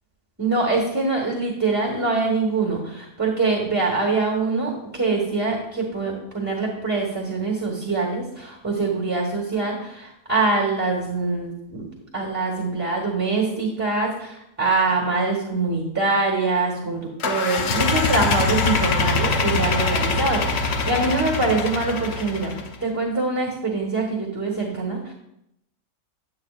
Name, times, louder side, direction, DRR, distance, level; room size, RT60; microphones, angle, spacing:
voice 1, 0.4-11.8 12.1-25.1, right 3 dB, 10° right, -2 dB, 1.1 m, -24 dB
sound 1, 17.2-22.7, left 4 dB, 55° left, 0.9 m, -23 dB
8.6 x 8.3 x 2.4 m, 0.79 s
omnidirectional pair, 1.5 m